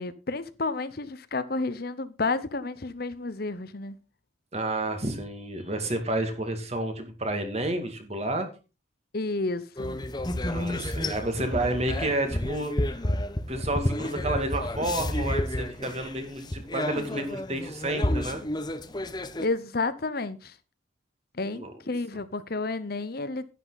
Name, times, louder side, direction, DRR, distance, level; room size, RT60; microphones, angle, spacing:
voice 1, 0.0-4.0 9.1-10.0 19.4-20.5 21.4-23.5, left 3 dB, 50° left, 0.8 m, -31 dB
voice 2, 4.5-8.5 10.5-13.0 13.5-18.4 21.5-21.7, right 1 dB, 35° right, 2.3 m, -30 dB
sound 1, 9.8-19.5, left 1 dB, 20° left, 0.8 m, -30 dB
11.0 x 10.0 x 4.1 m
head